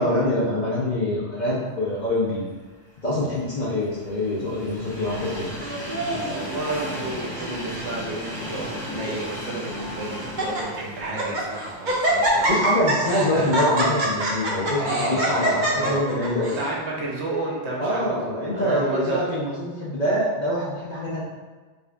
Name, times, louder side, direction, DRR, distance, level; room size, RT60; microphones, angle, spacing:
voice 1, 0.0-2.5 3.0-5.5 12.5-16.6 17.8-21.2, left 1 dB, 50° left, -7 dB, 0.6 m, -25 dB
Train, 2.8-12.9 13.3-13.4 14.5-14.6, equal, ahead, 1.0 m, -35 dB
Laughter, 5.6-6.4 7.1-7.5 7.8-7.9 8.6-9.2 9.8-9.9 10.2-10.6 11.0-11.5 11.8-16.6, right 1 dB, 50° right, 0.7 m, -25 dB
voice 2, 6.3-13.5 14.7-19.2, right 2 dB, 65° right, -3 dB, 1.0 m, -31 dB
4.7 x 2.5 x 2.3 m, 1.3 s
omnidirectional pair, 1.3 m